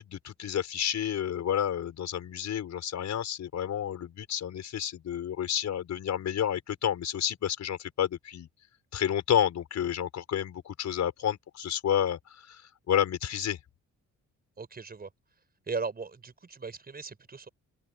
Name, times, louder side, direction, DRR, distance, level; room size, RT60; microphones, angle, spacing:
voice 1, 0.0-8.5 8.9-12.6 12.9-13.6, left 9 dB, 65° left, 6.2 m, -30 dB
voice 2, 14.6-15.1 15.7-17.5, right 4 dB, 30° right, 5.3 m, -37 dB
open air
cardioid pair, 90°, 30 cm